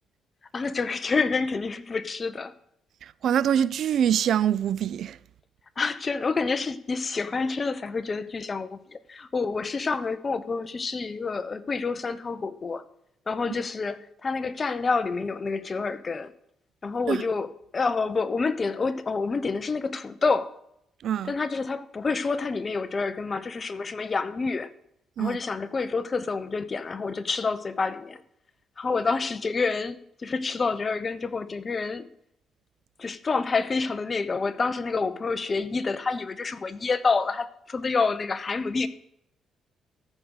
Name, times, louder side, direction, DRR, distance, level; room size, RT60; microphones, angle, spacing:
voice 1, 0.5-2.5 5.8-12.8 13.3-16.3 16.8-20.5 21.2-24.7 25.2-28.2 28.8-32.1 33.0-38.9, left 4 dB, 35° left, 0.8 m, -28 dB
voice 2, 3.0-5.2 17.1-17.2 21.0-21.3 25.2-25.4, right 9 dB, 70° right, 0.4 m, -24 dB
14.0 x 5.2 x 6.3 m
cardioid pair, 90°, 0 cm